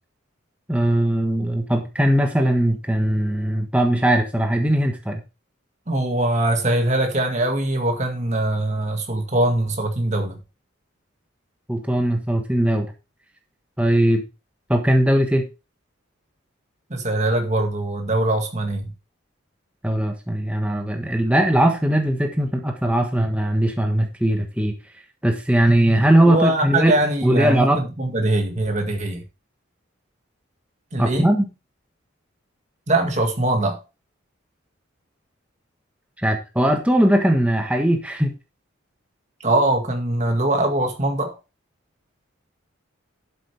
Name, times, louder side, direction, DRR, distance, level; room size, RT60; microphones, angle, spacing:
voice 1, 0.7-5.2 11.7-12.9 13.8-14.2 14.7-15.5 19.8-24.7 25.2-26.9 27.2-27.8 31.0-31.4 36.2-38.3, right 1 dB, 5° right, 1.3 m, -19 dB
voice 2, 5.9-10.4 16.9-18.9 25.8-29.2 30.9-31.3 32.9-33.8 39.4-41.4, right 1 dB, 35° right, 2.0 m, -22 dB
12.0 x 8.2 x 3.4 m
head